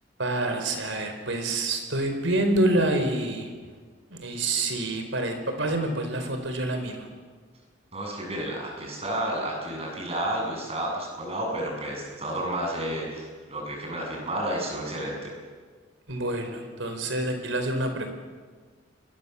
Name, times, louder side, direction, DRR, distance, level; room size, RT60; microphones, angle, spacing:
voice 1, 0.2-3.5 4.1-7.1 16.1-18.1, right 1 dB, 80° right, 6 dB, 4.5 m, -27 dB
voice 2, 7.9-15.3, right 1 dB, 30° right, 0 dB, 7.5 m, -31 dB
29.0 x 22.0 x 7.1 m, 1.5 s
head